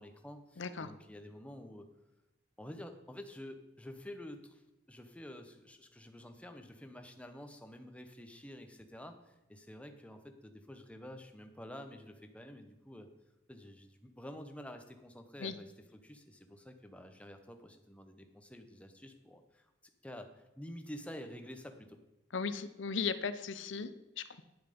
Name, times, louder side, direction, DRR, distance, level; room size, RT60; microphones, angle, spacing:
voice 1, 0.0-1.9 2.6-13.1 13.5-15.7 16.0-19.7 20.0-22.0, left 1 dB, 5° left, 6 dB, 0.9 m, -49 dB
voice 2, 0.6-0.9 15.4-15.6 22.3-24.4, left 5 dB, 75° left, 12 dB, 0.7 m, -37 dB
9.9 x 8.7 x 5.3 m, 0.98 s
head